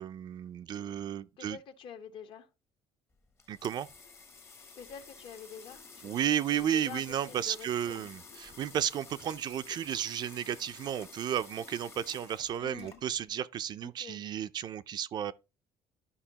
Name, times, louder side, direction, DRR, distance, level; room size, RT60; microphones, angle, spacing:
voice 1, 0.0-1.6 3.5-3.9 6.0-15.3, right 10 dB, 45° right, 0.4 m, -33 dB
voice 2, 1.4-2.5 4.7-8.1 12.6-13.0 13.8-14.2, left 7 dB, 55° left, 0.9 m, -47 dB
sound 1, 3.1-13.4, left 4 dB, 25° left, 0.8 m, -52 dB
12.5 x 5.3 x 2.8 m
cardioid pair, 140°, 11 cm